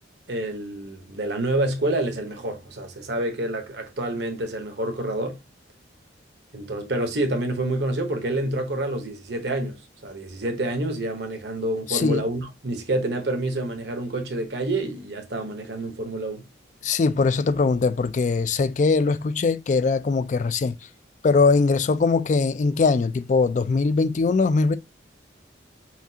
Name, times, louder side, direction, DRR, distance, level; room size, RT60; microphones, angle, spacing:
voice 1, 0.3-5.4 6.5-16.4, right 1 dB, 65° right, 0.9 m, -28 dB
voice 2, 11.9-12.2 16.8-20.8 21.2-24.8, left 4 dB, 40° left, 0.3 m, -21 dB
5.8 x 2.4 x 2.7 m
head